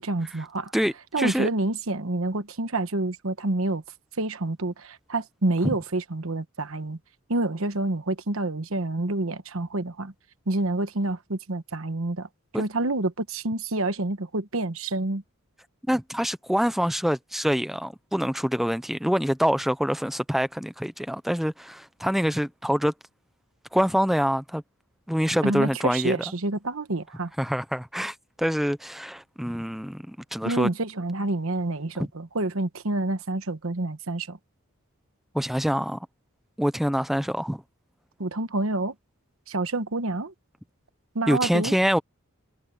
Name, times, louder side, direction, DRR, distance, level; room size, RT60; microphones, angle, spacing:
voice 1, 0.0-0.7 1.1-3.8 4.2-7.0 7.3-10.1 10.5-15.2 25.4-27.3 30.4-34.4 38.2-38.9 39.5-40.3 41.1-41.8, right 2 dB, 65° right, 1.2 m, -28 dB
voice 2, 0.7-1.5 5.6-5.7 12.5-12.6 15.9-22.9 23.7-24.6 25.1-26.2 27.4-30.7 35.3-36.0 36.6-37.6 41.3-42.0, equal, ahead, 0.6 m, -25 dB
head